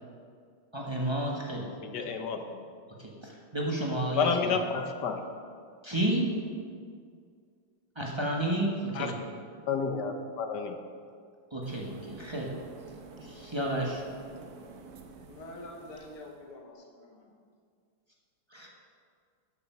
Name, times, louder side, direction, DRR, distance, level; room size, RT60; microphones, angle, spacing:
voice 1, 0.7-1.7 3.0-4.6 5.8-6.3 7.9-9.2 11.5-12.6 13.2-14.0 18.5-18.7, right 1 dB, 15° right, -2 dB, 1.0 m, -31 dB
voice 2, 1.8-2.6 4.1-5.2 8.9-9.1 9.7-10.8, left 5 dB, 60° left, 6 dB, 1.3 m, -30 dB
sound 1, 11.6-16.4, right 4 dB, 55° right, 1.2 m, -49 dB
voice 3, 15.2-17.3, left 1 dB, 85° left, 1 dB, 2.4 m, -46 dB
13.5 x 7.1 x 5.6 m, 2.1 s
omnidirectional pair, 2.4 m